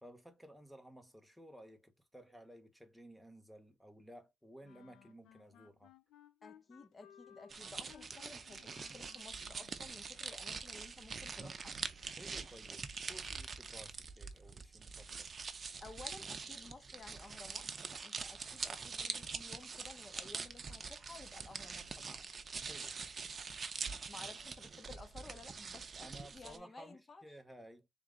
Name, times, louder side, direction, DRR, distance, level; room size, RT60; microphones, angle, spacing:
voice 1, 0.0-5.9 12.2-15.3 22.7-23.0 26.0-27.9, equal, ahead, 1.1 m, -56 dB
sound 1, 4.6-10.3, left 10 dB, 85° left, 0.5 m, -62 dB
voice 2, 6.4-11.8 15.8-22.3 24.1-27.4, left 3 dB, 35° left, 1.1 m, -55 dB
sound 2, 7.5-26.6, right 5 dB, 40° right, 0.7 m, -44 dB
3.6 x 2.9 x 3.8 m
cardioid pair, 90°, 0 cm